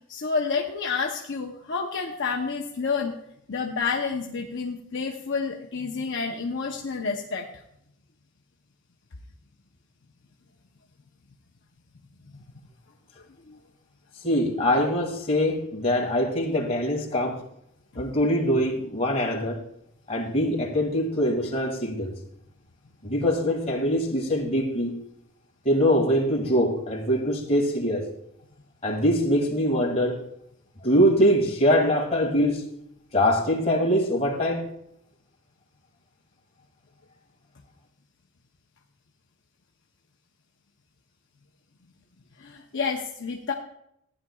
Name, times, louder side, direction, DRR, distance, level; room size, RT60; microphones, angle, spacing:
voice 1, 0.1-3.1 3.5-7.5 12.3-12.4 13.5-13.6 42.4-43.5, left 5 dB, 55° left, 0.8 m, -29 dB
voice 2, 14.2-17.4 18.0-19.6 20.1-22.1 23.0-24.9 25.6-28.1 28.8-30.2 30.8-32.6 33.1-34.7, equal, 30° left, 1.9 m, -23 dB
15.0 x 9.8 x 2.3 m
head